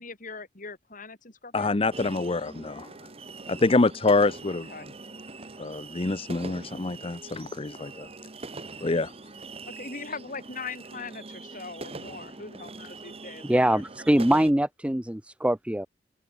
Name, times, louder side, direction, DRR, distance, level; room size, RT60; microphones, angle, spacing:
voice 1, 0.0-1.7 4.5-4.9 9.7-13.8, left 4 dB, 45° left, 4.7 m, -41 dB
voice 2, 1.5-2.9 3.5-4.7 5.6-8.1 8.8-9.1, left 3 dB, 30° left, 0.7 m, -26 dB
sound 1, 1.9-14.5, right 3 dB, 35° right, 1.5 m, -43 dB
voice 3, 13.4-15.9, right 1 dB, 5° right, 0.7 m, -23 dB
open air
head